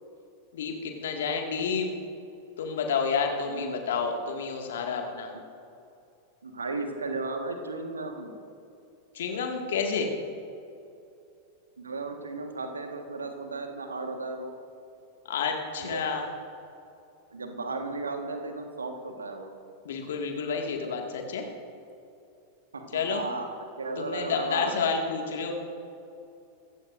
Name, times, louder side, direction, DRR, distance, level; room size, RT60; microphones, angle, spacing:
voice 1, 0.5-1.9 2.6-5.3 9.1-10.1 15.3-16.3 19.9-21.5 22.9-23.2 24.0-25.5, left 5 dB, 60° left, 2 dB, 2.0 m, -29 dB
voice 2, 3.4-3.8 6.4-8.4 11.8-14.5 15.8-16.1 17.3-19.5 22.7-22.9 23.1-24.8, right 3 dB, 75° right, 5 dB, 1.5 m, -35 dB
25.0 x 15.0 x 2.6 m, 2.7 s
figure-of-eight pair, 90°, 0 cm